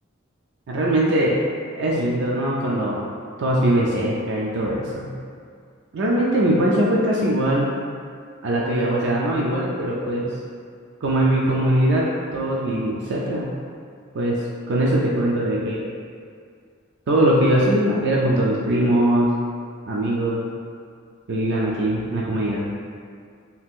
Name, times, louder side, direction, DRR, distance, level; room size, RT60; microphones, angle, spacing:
voice 1, 0.7-1.4 1.7-3.0 3.4-5.2 5.9-7.8 8.4-10.3 11.0-13.5 14.1-14.4 14.7-15.9 17.1-19.3 19.9-20.4 21.3-22.7, right 1 dB, 60° right, -4 dB, 0.4 m, -21 dB
2.8 x 2.4 x 3.5 m, 2.2 s
head